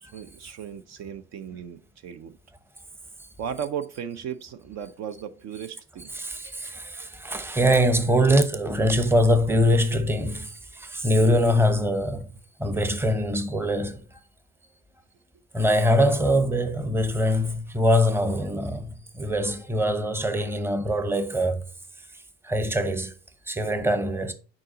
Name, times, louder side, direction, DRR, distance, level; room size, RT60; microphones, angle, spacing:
voice 1, 0.0-2.4 3.4-6.1, right 8 dB, 55° right, 0.7 m, -36 dB
voice 2, 6.1-12.3 12.6-14.2 15.5-21.7 22.4-23.1 23.5-24.3, equal, 5° right, 0.9 m, -23 dB
6.4 x 4.9 x 3.9 m
supercardioid pair, 95°, 32 cm